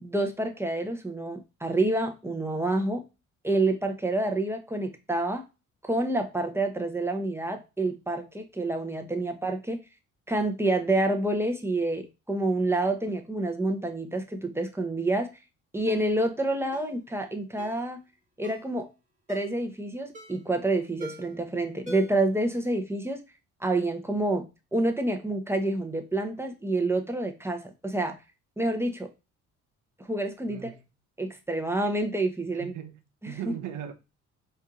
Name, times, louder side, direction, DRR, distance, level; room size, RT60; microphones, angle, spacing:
voice 1, 0.0-3.0 3.4-5.4 5.8-9.8 10.3-15.3 15.7-18.0 18.4-18.9 19.3-23.2 23.6-24.5 24.7-28.2 28.6-29.1 30.1-30.7 31.2-32.7 33.2-33.3, right 2 dB, 10° right, 0.9 m, -28 dB
Ringtone, 15.9-16.1 16.7-16.9 17.6-17.8 18.4-18.7 19.3-19.6 20.1-20.5 21.0-21.4 21.9-22.3 22.6-22.7, equal, 25° right, 1.3 m, -45 dB
voice 2, 30.5-30.8 32.4-33.9, right 10 dB, 85° right, 0.9 m, -39 dB
4.4 x 2.7 x 3.7 m
cardioid pair, 90°, 30 cm